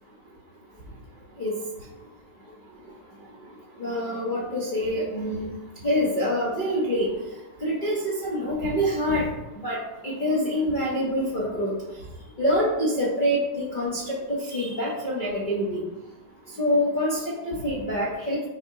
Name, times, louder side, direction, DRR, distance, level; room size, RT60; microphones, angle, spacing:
voice 1, 3.8-5.5 5.8-7.1 7.6-9.3 9.6-11.7 12.4-15.8 16.6-18.4, equal, 40° left, -7 dB, 0.8 m, -26 dB
5.6 x 2.1 x 3.6 m, 1.0 s
omnidirectional pair, 1.9 m